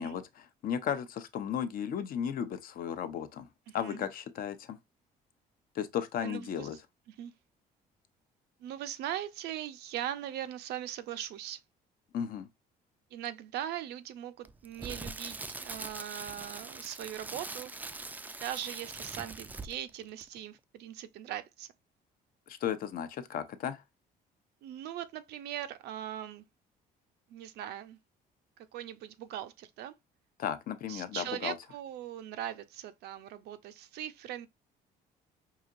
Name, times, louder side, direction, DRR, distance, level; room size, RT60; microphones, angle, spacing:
voice 1, 0.0-3.5 3.7-4.8 5.7-6.8 12.1-12.5 22.5-23.8 30.4-31.6, left 8 dB, 60° left, 0.6 m, -35 dB
voice 2, 3.7-4.0 6.2-6.7 7.1-7.3 8.6-11.6 13.1-17.7 18.4-21.7 24.6-26.4 27.3-28.0 28.6-29.9 30.9-34.5, right 11 dB, 75° right, 0.5 m, -40 dB
Crackle, 14.4-19.9 20.2-20.4, right 3 dB, 10° right, 0.3 m, -42 dB
4.9 x 2.8 x 2.4 m
cardioid pair, 110°, 17 cm